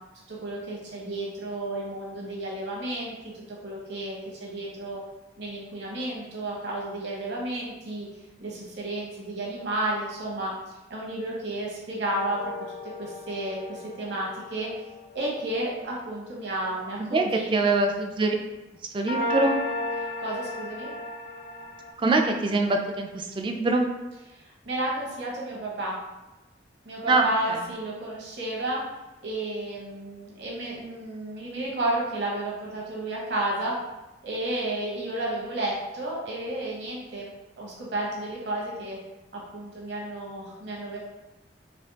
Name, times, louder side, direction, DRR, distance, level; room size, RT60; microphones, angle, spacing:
voice 1, 0.3-5.0 5.4-8.1 8.4-12.5 13.0-14.7 15.1-17.8 20.2-20.9 24.3-26.0 26.8-28.8 29.2-33.8 34.2-39.0 39.3-41.0, right 1 dB, 65° right, -4 dB, 1.0 m, -32 dB
sound 1, 12.3-15.8 19.1-21.9, left 1 dB, 50° left, 0.5 m, -34 dB
voice 2, 17.5-18.4 18.9-19.6 22.0-23.9 27.1-27.6, right 2 dB, 25° right, 3 dB, 0.3 m, -24 dB
3.3 x 2.9 x 2.8 m, 1.1 s
head